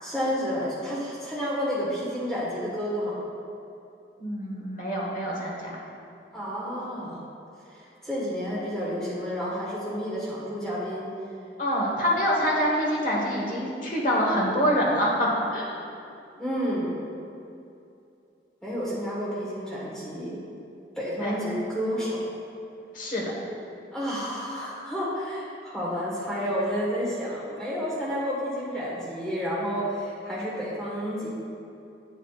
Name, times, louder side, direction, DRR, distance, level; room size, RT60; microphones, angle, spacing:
voice 1, 0.0-3.2 6.3-7.2 7.7-11.1 16.4-17.0 18.6-20.4 21.0-22.2 23.9-31.3, equal, 5° left, -8 dB, 1.4 m, -30 dB
voice 2, 4.2-5.8 11.6-15.8 21.2-21.4 22.9-23.3, equal, 45° left, -3 dB, 1.3 m, -26 dB
8.2 x 7.5 x 2.4 m, 2.7 s
head